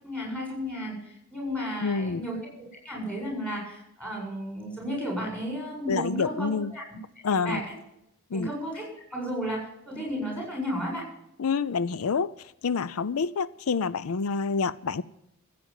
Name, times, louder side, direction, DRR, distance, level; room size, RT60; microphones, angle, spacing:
voice 1, 0.0-2.4 2.8-6.8 7.3-7.6 8.3-11.0, equal, 5° left, -2 dB, 7.6 m, -33 dB
voice 2, 1.8-2.2 5.9-6.7 7.2-7.6 8.3-8.5 11.4-12.3 12.6-15.0, left 5 dB, 85° left, 18 dB, 0.5 m, -27 dB
15.0 x 8.6 x 8.9 m, 0.80 s
head